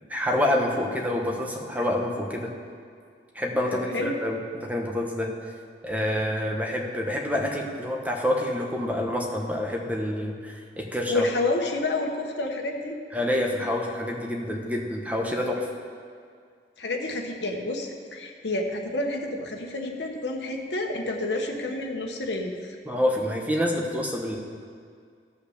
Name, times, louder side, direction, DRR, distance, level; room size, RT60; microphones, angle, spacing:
voice 1, 0.1-2.5 3.3-5.3 5.8-11.2 13.1-15.7 22.8-24.4, left 1 dB, 10° right, 0 dB, 1.3 m, -27 dB
voice 2, 3.7-4.2 11.1-13.0 16.8-22.7, left 2 dB, 75° left, 1 dB, 1.3 m, -29 dB
15.0 x 5.7 x 6.6 m, 2.2 s
head